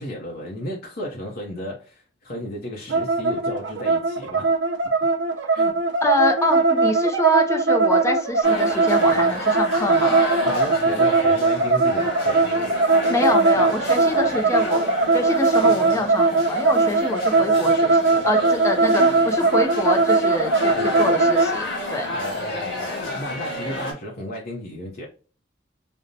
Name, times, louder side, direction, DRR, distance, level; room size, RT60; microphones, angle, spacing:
voice 1, 0.0-4.5 5.5-5.7 10.4-12.5 20.7-21.2 22.1-25.1, left 1 dB, 55° left, -1 dB, 0.6 m, -33 dB
sound 1, 2.9-21.5, right 3 dB, 70° right, 0.5 m, -20 dB
voice 2, 6.0-10.2 13.1-14.8 15.1-22.1, left 1 dB, 15° left, 3 dB, 0.4 m, -25 dB
sound 2, 8.4-23.9, left 2 dB, 75° left, 1.4 m, -31 dB
5.1 x 2.0 x 2.6 m, 0.37 s
head